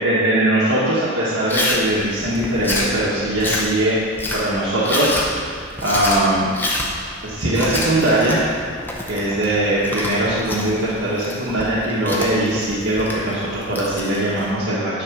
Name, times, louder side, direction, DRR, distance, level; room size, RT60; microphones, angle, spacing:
voice 1, 0.0-4.0 4.4-5.6 5.8-6.5 7.2-8.4 9.1-15.0, right 1 dB, 65° right, -9 dB, 1.3 m, -20 dB
Chewing mastication, 1.5-14.5, left 1 dB, 10° left, 0.8 m, -28 dB
9.8 x 4.3 x 5.9 m, 2.4 s
head